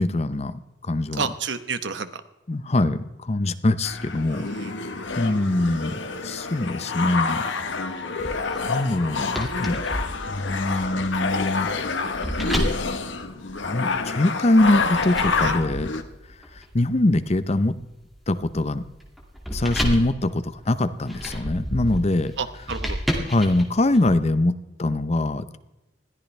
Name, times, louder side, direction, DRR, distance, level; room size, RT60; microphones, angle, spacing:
voice 1, 0.0-1.2 2.5-4.5 5.2-7.4 8.7-9.8 10.3-11.7 13.6-15.9 16.7-17.8 18.3-18.8 19.5-22.3 23.3-25.6, left 2 dB, 35° left, 13 dB, 0.7 m, -23 dB
voice 2, 1.1-2.2 4.3-4.7 15.4-15.5 22.4-23.0, right 5 dB, 70° right, 11 dB, 1.1 m, -30 dB
sound 1, 3.8-16.0, left 4 dB, 75° left, 1.2 m, -28 dB
Wind instrument woodwind instrument, 4.0-11.6, right 3 dB, 90° right, 6.4 m, -47 dB
sound 2, 8.2-14.0 14.6-24.1, equal, ahead, 2.1 m, -32 dB
21.0 x 14.5 x 3.3 m, 1.0 s
head